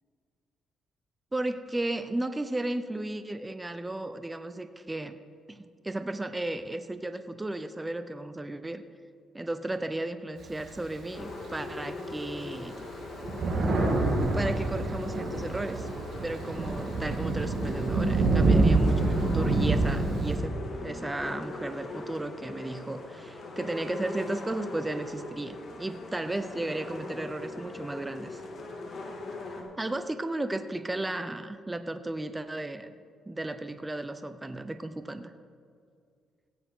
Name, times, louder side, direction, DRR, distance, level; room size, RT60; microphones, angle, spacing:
voice 1, 1.3-5.2 5.5-8.8 9.3-12.8 14.3-15.9 16.2-20.5 20.8-28.4 29.8-32.9 33.3-35.3, right 2 dB, 15° right, 10 dB, 0.6 m, -34 dB
Thunder, 10.4-11.6 12.2-12.3 12.5-20.4, right 3 dB, 60° right, 2.8 m, -26 dB
sound 1, 11.1-29.6, left 2 dB, 50° left, 1.9 m, -40 dB
15.5 x 9.6 x 3.7 m, 2.2 s
cardioid pair, 90°, 0 cm